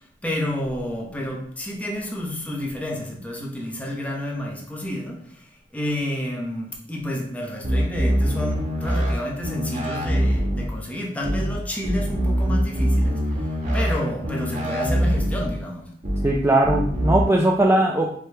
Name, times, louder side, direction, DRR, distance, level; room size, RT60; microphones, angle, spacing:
voice 1, 0.2-5.4 5.7-13.2 13.7-15.9, left 1 dB, 10° left, 0.8 m, -29 dB
sound 1, 7.6-9.1 9.4-10.6 11.2-11.5 11.8-13.9 14.2-15.4 16.0-16.3 16.6-17.2, equal, 45° right, 1.2 m, -23 dB
voice 2, 16.2-18.1, right 1 dB, 15° right, 0.3 m, -19 dB
4.9 x 2.9 x 3.3 m
head